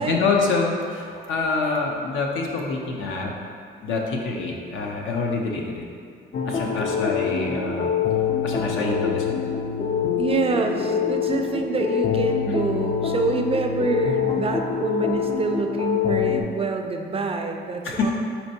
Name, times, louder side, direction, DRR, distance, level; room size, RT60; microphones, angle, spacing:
voice 1, 0.0-3.3 3.8-5.8 6.5-7.9 8.4-9.3 17.8-18.1, left 3 dB, 75° left, 0 dB, 0.7 m, -26 dB
sound 1, 6.3-16.4, left 7 dB, 40° left, 0.4 m, -25 dB
voice 2, 10.2-18.1, right 4 dB, 30° right, 4 dB, 0.4 m, -26 dB
4.4 x 4.3 x 2.7 m, 2.2 s
cardioid pair, 90°, 20 cm